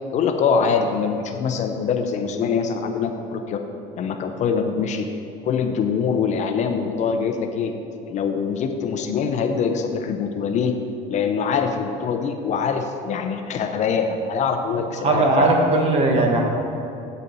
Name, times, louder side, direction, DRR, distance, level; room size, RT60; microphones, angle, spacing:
voice 1, 0.1-3.6 4.0-5.1 5.4-7.8 8.1-10.7 11.1-15.5, left 6 dB, 45° left, 6 dB, 0.6 m, -23 dB
voice 2, 15.0-16.4, right 2 dB, 35° right, 1 dB, 1.3 m, -18 dB
8.1 x 6.6 x 5.4 m, 2.8 s
cardioid pair, 150°, 17 cm